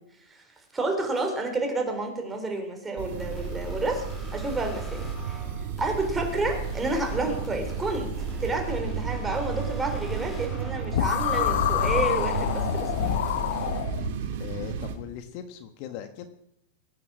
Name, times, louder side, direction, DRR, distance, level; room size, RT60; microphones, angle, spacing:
voice 1, 0.7-4.1 4.3-5.5 5.8-8.1 8.4-12.9, right 2 dB, 10° right, 3 dB, 3.7 m, -30 dB
sound 1, 3.0-14.9, right 8 dB, 60° right, 2.7 m, -34 dB
sound 2, 3.1-13.8, right 1 dB, 15° left, 5.7 m, -39 dB
sound 3, 10.9-14.1, left 11 dB, 65° left, 1.0 m, -26 dB
voice 2, 14.4-16.3, left 10 dB, 45° left, 8 dB, 1.5 m, -39 dB
22.0 x 9.5 x 6.2 m, 0.78 s
hypercardioid pair, 135°, 0 cm